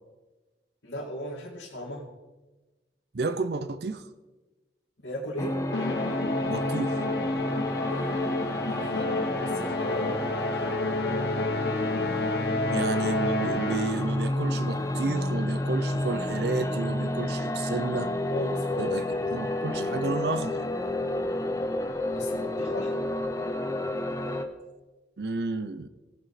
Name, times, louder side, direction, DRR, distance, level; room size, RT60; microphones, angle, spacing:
voice 1, 0.8-2.0 5.0-5.5 7.9-10.8 18.3-19.2 22.1-23.1, equal, 80° left, 2.1 m, -37 dB
voice 2, 3.1-4.1 6.4-7.0 12.7-18.1 18.8-19.0 19.3-20.7 25.2-25.9, right 3 dB, 60° right, 0.6 m, -31 dB
sound 1, 5.4-24.4, left 1 dB, 15° left, 0.8 m, -30 dB
Musical instrument, 5.7-14.2, left 2 dB, 65° left, 0.8 m, -31 dB
18.5 x 7.1 x 4.2 m
head